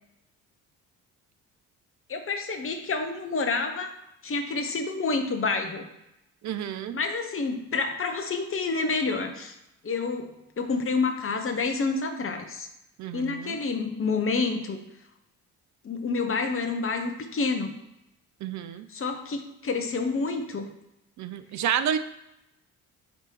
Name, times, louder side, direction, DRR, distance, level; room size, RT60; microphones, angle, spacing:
voice 1, 2.1-3.9 4.2-5.9 6.9-9.5 9.8-12.7 13.1-14.8 15.8-17.7 18.9-20.7, left 4 dB, 30° left, 5 dB, 1.1 m, -28 dB
voice 2, 6.4-7.0 13.0-13.6 18.4-18.9 21.2-22.0, right 9 dB, 40° right, 11 dB, 0.6 m, -30 dB
9.5 x 3.3 x 3.0 m, 0.87 s
figure-of-eight pair, 45°, 46 cm